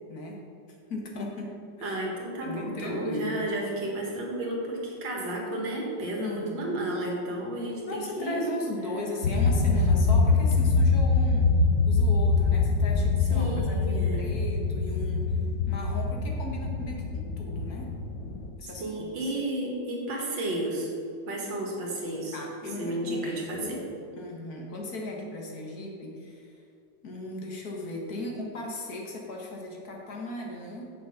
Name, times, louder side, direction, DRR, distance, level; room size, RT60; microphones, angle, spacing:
voice 1, 0.1-0.4 0.9-2.0 2.4-3.5 6.2-6.8 7.9-11.5 11.9-15.4 15.7-17.9 18.6-19.3 22.3-23.9 24.1-26.5 27.0-30.9, left 2 dB, 55° left, -1 dB, 1.8 m, -37 dB
voice 2, 1.8-8.5 13.3-14.3 18.8-20.9 21.3-22.4 22.8-23.8, right 1 dB, 80° right, -1 dB, 2.4 m, -32 dB
sound 1, 9.2-18.5, left 4 dB, 85° left, 1.5 m, -24 dB
8.5 x 6.3 x 5.7 m, 2.6 s
omnidirectional pair, 1.9 m